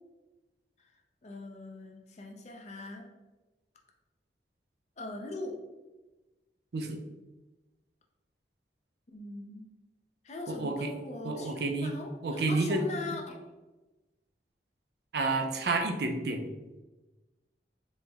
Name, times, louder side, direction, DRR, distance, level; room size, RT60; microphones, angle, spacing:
voice 1, 0.8-3.1 5.0-5.6 9.1-9.7 10.2-13.5, left 2 dB, 40° left, 2 dB, 0.4 m, -41 dB
voice 2, 10.5-10.9 11.2-11.9 12.2-12.8 15.1-16.4, right 3 dB, 65° right, 5 dB, 0.5 m, -30 dB
4.2 x 2.1 x 3.4 m, 1.1 s
head